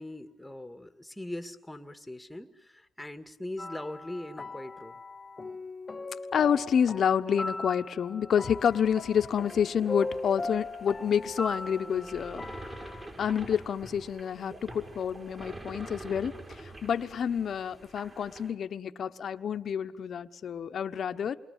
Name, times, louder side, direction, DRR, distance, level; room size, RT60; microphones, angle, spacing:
voice 1, 0.0-5.0, left 1 dB, 5° left, 8 dB, 2.1 m, -41 dB
sound 1, 3.6-13.1, left 3 dB, 30° left, 1.0 m, -39 dB
voice 2, 6.3-12.4 13.2-21.4, left 8 dB, 55° left, 9 dB, 1.2 m, -28 dB
sound 2, 8.6-18.5, right 1 dB, 25° right, 5.9 m, -46 dB
28.0 x 22.5 x 8.4 m, 0.77 s
cardioid pair, 90°, 0 cm